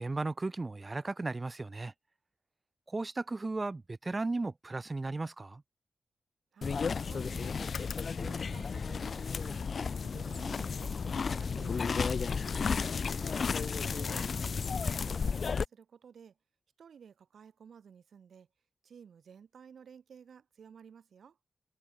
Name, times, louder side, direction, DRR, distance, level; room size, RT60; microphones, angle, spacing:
voice 1, 0.0-1.9 2.9-5.6, right 3 dB, 25° right, 0.4 m, -35 dB
voice 2, 6.5-9.6 10.0-12.3 13.6-16.4 16.8-18.5 18.8-21.4, right 7 dB, 85° right, 2.1 m, -54 dB
sound 1, 6.6-15.6, left 5 dB, 55° left, 0.3 m, -33 dB
sound 2, 7.6-13.2, left 7 dB, 80° left, 2.2 m, -50 dB
wide cardioid pair, 130°, 0 cm